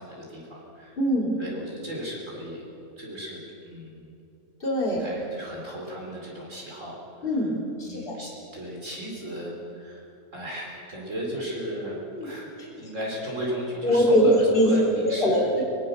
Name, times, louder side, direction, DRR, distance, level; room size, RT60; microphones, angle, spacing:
voice 1, 0.0-1.0 1.4-2.6 3.0-3.4 3.6-4.0 4.9-7.0 7.8-10.0 10.3-12.5 12.8-15.5, equal, 60° right, -3 dB, 4.8 m, -35 dB
voice 2, 1.0-1.3 4.6-5.1 7.2-8.2 12.1-12.3 12.6-12.8 13.8-14.7 15.0-15.6, equal, 40° left, -3 dB, 4.0 m, -23 dB
23.5 x 20.5 x 6.9 m, 2.8 s
omnidirectional pair, 1.5 m